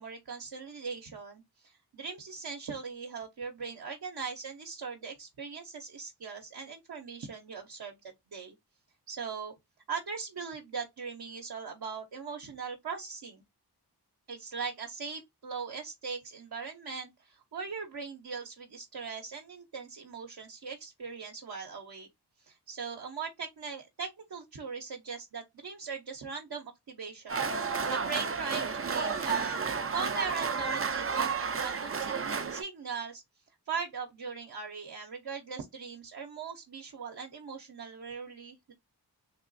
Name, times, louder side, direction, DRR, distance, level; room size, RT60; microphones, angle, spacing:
voice 1, 0.0-8.0 8.3-8.6 9.1-9.5 9.9-13.4 14.3-22.1 22.4-33.2 33.7-38.7, right 5 dB, 65° right, 0.8 m, -40 dB
sound 1, 27.3-32.6, right 5 dB, 35° right, 0.5 m, -31 dB
3.4 x 2.9 x 2.6 m
wide cardioid pair, 70°, 40 cm